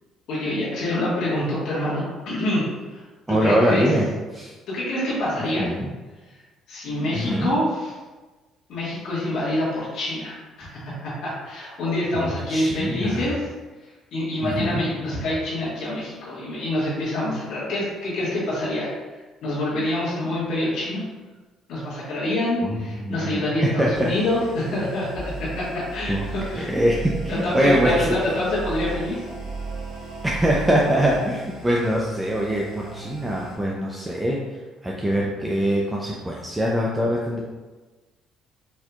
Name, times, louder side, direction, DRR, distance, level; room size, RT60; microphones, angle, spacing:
voice 1, 0.3-3.1 3.4-3.9 4.7-5.6 6.7-7.9 8.7-13.5 14.1-18.9 19.4-21.0 21.7-25.5 25.7-26.7 27.3-29.2, left 1 dB, 70° left, -9 dB, 1.4 m, -26 dB
voice 2, 3.3-4.1 4.3-4.5 5.6-5.9 7.1-7.5 12.1-13.3 14.4-14.8 22.6-23.4 23.8-24.1 26.1-26.2 26.6-28.1 30.2-34.4 34.8-37.4, equal, 15° right, -3 dB, 0.5 m, -23 dB
sound 1, 23.9-33.5, right 3 dB, 85° right, 1.1 m, -36 dB
4.4 x 2.7 x 2.3 m, 1.3 s
supercardioid pair, 80°, 0 cm